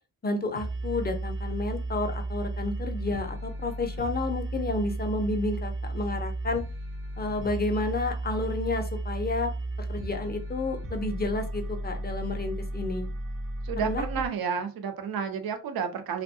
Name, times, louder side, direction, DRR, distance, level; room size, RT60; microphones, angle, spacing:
voice 1, 0.2-6.6 7.2-9.5 9.9-13.1 13.8-14.0, left 2 dB, 30° left, 5 dB, 0.4 m, -31 dB
sound 1, 0.5-14.3, right 2 dB, 35° right, 0.5 m, -34 dB
voice 2, 13.6-16.2, right 7 dB, 85° right, 7 dB, 0.6 m, -31 dB
2.6 x 2.1 x 2.6 m, 0.32 s
wide cardioid pair, 120°, 35 cm